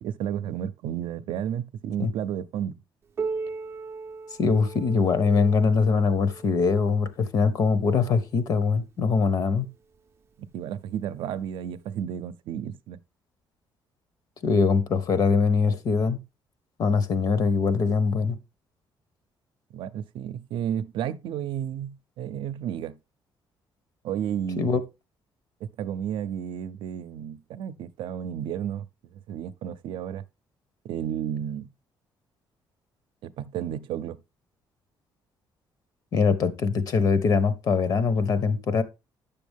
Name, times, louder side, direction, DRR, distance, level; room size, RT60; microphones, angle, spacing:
voice 1, 0.0-2.8 10.5-13.0 19.7-23.0 24.0-24.8 25.6-28.9 29.3-30.2 30.8-31.7 33.2-34.2, right 9 dB, 80° right, 0.6 m, -32 dB
Piano, 3.2-8.5 9.4-9.5 9.9-10.0 10.8-10.9 12.0-12.1, right 4 dB, 30° right, 0.5 m, -38 dB
voice 2, 4.4-9.7 14.4-16.2 16.8-18.4 24.6-24.8 36.1-38.8, left 5 dB, 45° left, 1.0 m, -22 dB
10.0 x 6.9 x 3.5 m
cardioid pair, 165°, 8 cm